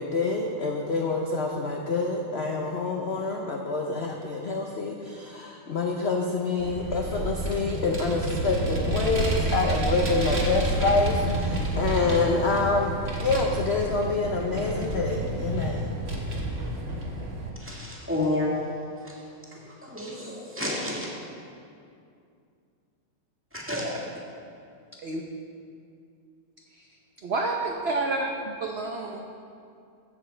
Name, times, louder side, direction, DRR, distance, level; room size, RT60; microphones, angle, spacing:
voice 1, 0.0-12.9 13.2-15.9, left 3 dB, 55° left, 0 dB, 0.8 m, -27 dB
Vehicle, 6.6-17.5, right 1 dB, 40° right, 1.5 m, -29 dB
voice 2, 17.6-18.6 19.0-19.2 19.5-21.1 23.5-24.0, left 1 dB, 5° right, -5 dB, 1.8 m, -30 dB
voice 3, 27.2-29.2, right 2 dB, 55° right, 1 dB, 0.7 m, -29 dB
14.0 x 7.3 x 4.4 m, 2.4 s
omnidirectional pair, 1.9 m